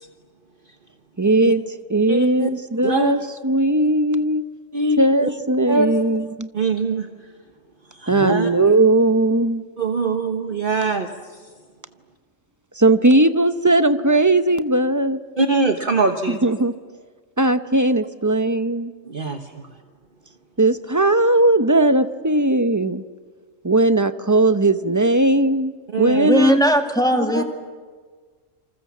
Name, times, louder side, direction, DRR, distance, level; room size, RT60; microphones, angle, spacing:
voice 1, 1.2-1.6 1.9-4.5 5.0-6.5 8.1-9.6 12.8-15.2 16.3-16.7 17.4-18.9 20.6-23.0 23.6-26.6, right 2 dB, 15° right, 0.7 m, -18 dB
voice 2, 2.1-2.5 2.8-3.1 4.7-5.3 5.7-5.9 6.5-7.3 7.9-8.5 9.8-11.4 15.4-16.4 19.0-19.7 25.9-26.3 27.3-27.4, right 3 dB, 45° right, 1.4 m, -23 dB
voice 3, 26.2-27.4, equal, 5° left, 1.9 m, -18 dB
28.0 x 26.0 x 7.3 m
omnidirectional pair, 1.3 m